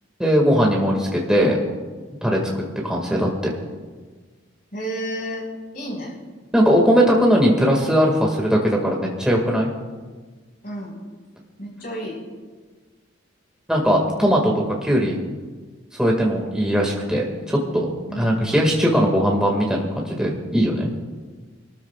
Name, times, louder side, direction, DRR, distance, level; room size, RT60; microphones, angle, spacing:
voice 1, 0.2-1.6 2.2-2.4 2.8-3.5 6.5-9.7 13.7-14.5 14.8-15.2 16.0-17.9 18.2-20.9, equal, 5° right, -2 dB, 2.0 m, -19 dB
voice 2, 4.7-5.5 5.7-6.1 10.6-11.0 11.6-12.2 18.1-18.3, equal, 45° left, -1 dB, 4.9 m, -31 dB
28.5 x 14.0 x 2.4 m, 1.4 s
head